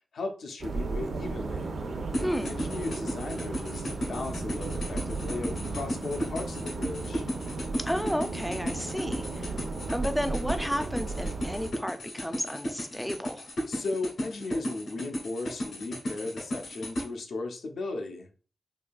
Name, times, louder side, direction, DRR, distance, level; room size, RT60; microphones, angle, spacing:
voice 1, 0.1-1.7 2.1-7.2 13.7-18.3, left 3 dB, 85° left, 0.6 m, -36 dB
sound 1, 0.6-11.7, right 3 dB, 70° right, 0.6 m, -35 dB
sound 2, 2.1-17.1, equal, 70° left, 1.9 m, -35 dB
voice 2, 2.2-2.5 7.8-9.5 9.9-13.5, equal, 5° left, 0.3 m, -32 dB
4.7 x 2.6 x 2.3 m
wide cardioid pair, 170°, 0 cm